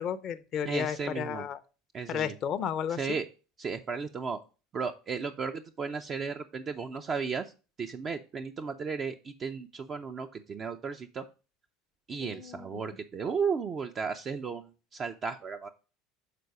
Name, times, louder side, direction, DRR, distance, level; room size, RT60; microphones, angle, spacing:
voice 1, 0.0-1.6 2.1-3.0 12.2-13.0, left 8 dB, 45° left, 10 dB, 0.5 m, -33 dB
voice 2, 0.6-1.5 1.9-2.3 2.9-3.3 3.6-4.4 4.7-7.5 7.8-11.2 12.1-14.6 14.9-15.7, right 5 dB, 40° right, 5 dB, 0.5 m, -34 dB
6.7 x 3.9 x 4.8 m, 0.33 s
hypercardioid pair, 80°, 0 cm